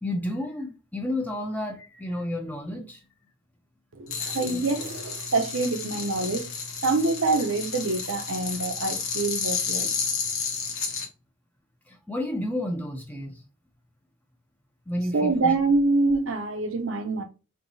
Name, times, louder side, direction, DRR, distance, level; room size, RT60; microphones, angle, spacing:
voice 1, 0.0-3.0 11.9-13.4 14.9-15.5, left 1 dB, 10° left, 0.5 m, -31 dB
voice 2, 3.9-6.5 6.8-10.0 15.1-17.2, right 3 dB, 65° right, 0.6 m, -25 dB
sound 1, 4.1-11.1, left 5 dB, 75° left, 1.0 m, -31 dB
4.6 x 2.8 x 2.7 m
head